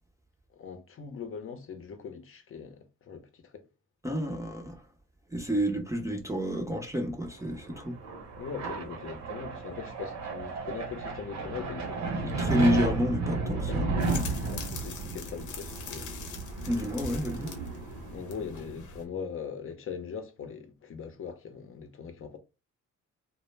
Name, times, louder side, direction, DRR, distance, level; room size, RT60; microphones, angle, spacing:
voice 1, 0.5-3.7 8.4-12.0 13.7-13.9 14.4-16.1 18.1-22.4, left 6 dB, 45° left, 0.6 m, -41 dB
voice 2, 4.0-4.9 5.3-8.0 12.2-14.0 16.6-17.5, equal, 10° right, 0.5 m, -30 dB
sound 1, 7.4-18.7, right 3 dB, 60° right, 0.8 m, -33 dB
sound 2, 14.0-19.0, left 5 dB, 75° left, 0.8 m, -42 dB
2.1 x 2.0 x 3.2 m
cardioid pair, 90°, 30 cm